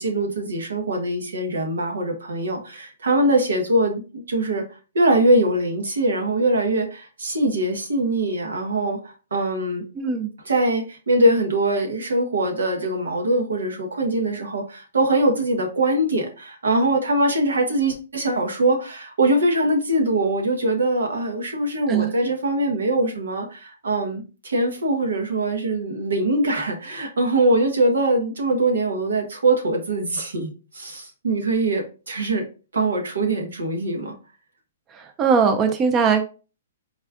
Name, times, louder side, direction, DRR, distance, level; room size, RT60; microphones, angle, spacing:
voice 1, 0.0-4.7 4.9-9.8 10.5-32.5 32.7-34.2, right 1 dB, 85° right, 3 dB, 1.2 m, -22 dB
voice 2, 9.9-10.3 21.9-22.1 34.9-36.2, right 6 dB, 20° right, 6 dB, 0.5 m, -20 dB
4.2 x 2.3 x 3.5 m, 0.34 s
hypercardioid pair, 145°, 0 cm